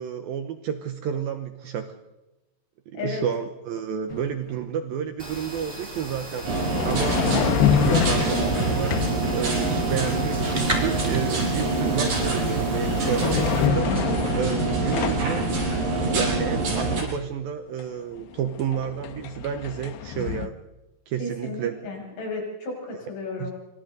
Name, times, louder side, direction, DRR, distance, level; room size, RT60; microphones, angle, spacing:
voice 1, 0.0-2.0 2.9-9.0 9.3-15.4 16.1-20.6 21.1-21.8 23.4-23.5, right 8 dB, 80° right, 7 dB, 2.1 m, -30 dB
sound 1, 4.1-4.3 6.4-9.3 11.9-12.2 12.5-15.3 17.8-17.9 18.2-20.5, left 10 dB, 75° left, 2.7 m, -27 dB
sound 2, 5.2-13.7, right 1 dB, 15° right, 2.4 m, -36 dB
sound 3, 6.4-17.0, right 2 dB, 45° right, 6.9 m, -25 dB
voice 2, 21.2-23.5, left 3 dB, 50° left, -1 dB, 7.9 m, -33 dB
26.5 x 25.0 x 4.0 m, 1.0 s
omnidirectional pair, 5.6 m